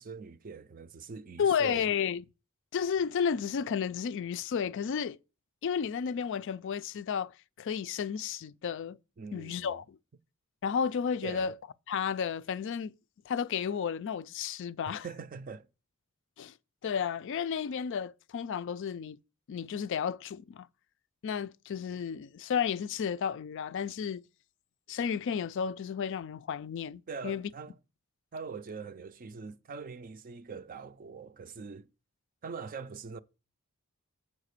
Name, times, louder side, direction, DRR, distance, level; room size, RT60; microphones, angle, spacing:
voice 1, 0.0-1.9 9.2-9.8 11.2-11.5 14.8-15.7 27.1-27.7 28.3-31.9 32.4-33.2, right 5 dB, 40° right, 0.4 m, -42 dB
voice 2, 1.4-2.2 2.7-5.2 5.6-9.0 9.3-10.0 10.6-11.5 11.9-12.9 13.3-15.1 16.4-16.5 16.8-19.2 19.5-20.7 21.2-24.2 24.9-27.5, left 7 dB, 60° left, 0.3 m, -32 dB
7.4 x 4.8 x 6.6 m
head